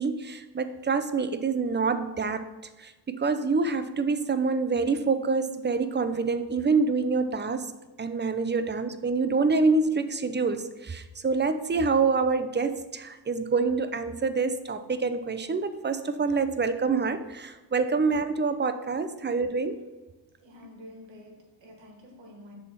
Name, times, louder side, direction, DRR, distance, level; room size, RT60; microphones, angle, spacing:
voice 1, 0.0-2.5 2.8-7.7 8.0-19.8, right 4 dB, 25° right, 0.6 m, -26 dB
voice 2, 20.4-22.5, left 1 dB, 90° right, 1.5 m, -48 dB
6.8 x 3.6 x 5.9 m
cardioid pair, 60°, 44 cm